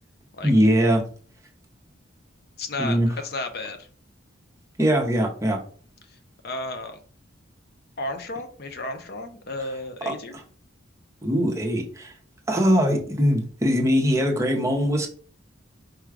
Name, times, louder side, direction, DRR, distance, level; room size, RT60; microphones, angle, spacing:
voice 1, 0.4-1.0 2.8-3.1 4.8-5.6 10.1-10.2 11.2-12.1 12.5-15.1, equal, 15° right, 2 dB, 0.7 m, -21 dB
voice 2, 2.6-3.0 3.2-3.9 6.4-7.0 8.0-10.3, left 2 dB, 50° left, 7 dB, 0.6 m, -33 dB
4.8 x 2.3 x 4.7 m, 0.43 s
head